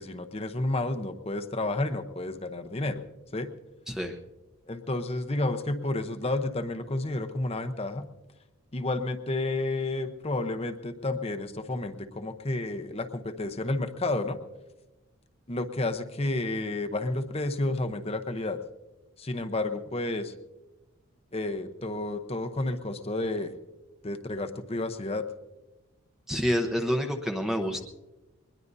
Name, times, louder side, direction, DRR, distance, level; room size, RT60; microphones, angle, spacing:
voice 1, 0.0-3.0 3.3-3.5 4.7-8.1 8.7-14.4 15.5-18.6 19.2-20.3 21.3-23.5 24.0-25.2, left 2 dB, 30° left, 7 dB, 0.8 m, -31 dB
voice 2, 26.3-27.8, equal, ahead, 3 dB, 0.8 m, -28 dB
22.0 x 20.5 x 2.7 m, 1.1 s
head